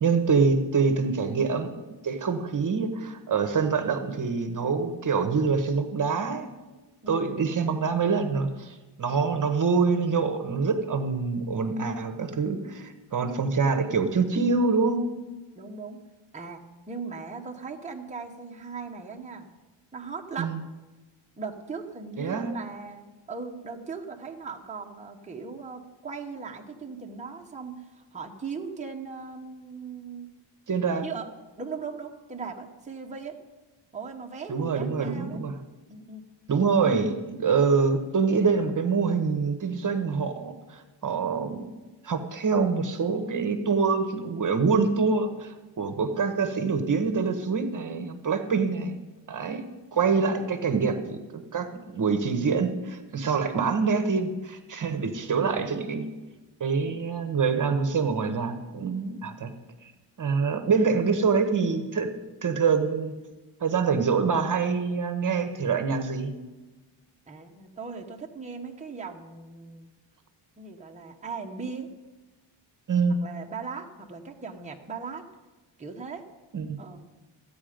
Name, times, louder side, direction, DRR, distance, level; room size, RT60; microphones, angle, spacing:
voice 1, 0.0-1.7 2.0-6.5 7.1-15.1 20.4-20.6 22.2-22.5 30.7-31.0 34.5-35.6 36.5-41.7 42.0-49.0 49.3-49.6 49.9-56.1 56.6-59.5 59.8-59.9 60.2-62.1 62.4-63.1 63.6-66.3 72.9-73.2 76.5-76.8, right 5 dB, 40° right, 8 dB, 1.1 m, -25 dB
voice 2, 15.5-16.0 16.3-19.5 19.9-20.5 21.4-30.3 31.0-31.3 31.6-33.4 33.9-35.4 35.9-36.2 56.8-57.0 59.0-59.2 67.3-69.9 70.6-71.9 73.2-75.2 75.8-76.2 76.8-77.0, right 5 dB, 15° right, 1 dB, 1.0 m, -38 dB
14.5 x 8.6 x 5.1 m, 1.2 s
cardioid pair, 115°, 49 cm